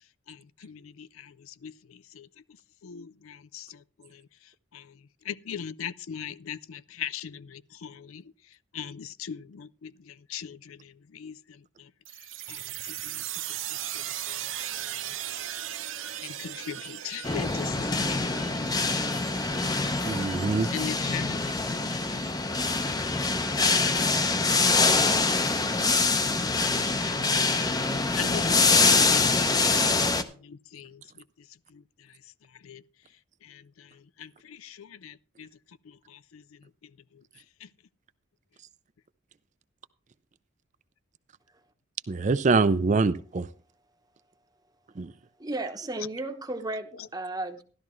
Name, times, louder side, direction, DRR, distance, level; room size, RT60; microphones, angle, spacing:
voice 1, 0.3-2.3 2.8-4.2 4.7-4.9 5.3-8.2 8.7-11.9 12.5-13.2 13.9-14.4 14.8-14.9 16.2-18.2 20.7-21.9 22.3-23.3 26.2-27.5 28.2-31.0 31.7-31.8 32.6-32.8 33.4-35.5 35.9-36.4 37.6-37.7, left 8 dB, 85° left, 0.4 m, -41 dB
sound 1, 12.0-23.5, right 11 dB, 70° right, 0.9 m, -39 dB
sound 2, 17.2-30.2, left 3 dB, 20° left, 0.6 m, -24 dB
voice 2, 20.0-20.7 42.1-43.5 45.0-45.1, right 4 dB, 35° right, 0.4 m, -24 dB
voice 3, 45.4-47.6, right 2 dB, 20° right, 0.9 m, -34 dB
13.0 x 12.0 x 3.1 m
head